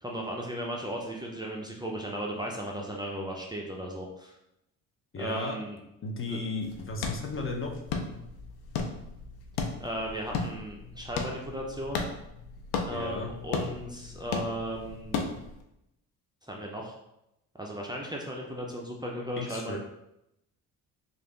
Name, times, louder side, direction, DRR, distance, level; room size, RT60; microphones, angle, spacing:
voice 1, 0.0-4.3 5.2-5.8 6.3-6.4 9.8-12.1 12.8-15.3 16.5-17.0 17.6-19.8, right 1 dB, 10° right, -1 dB, 0.6 m, -36 dB
voice 2, 5.1-5.6 6.0-7.7 12.9-13.3 19.4-19.8, left 3 dB, 35° left, 2 dB, 0.7 m, -34 dB
sound 1, 6.6-15.6, left 4 dB, 75° left, 0.7 m, -36 dB
3.3 x 2.6 x 3.7 m, 0.85 s
supercardioid pair, 70°, 38 cm